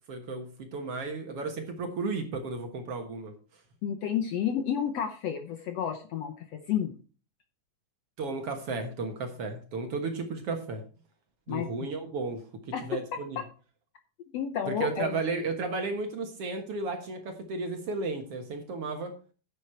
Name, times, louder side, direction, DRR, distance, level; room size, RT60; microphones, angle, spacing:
voice 1, 0.1-3.3 8.2-10.8 11.5-12.5 12.8-13.4 14.7-19.2, right 3 dB, 55° right, 5 dB, 2.0 m, -34 dB
voice 2, 3.8-6.9 11.5-11.7 12.7-12.9 13.4-13.5 14.3-15.2, left 8 dB, 70° left, 7 dB, 1.7 m, -31 dB
10.5 x 8.1 x 4.4 m, 0.36 s
omnidirectional pair, 3.7 m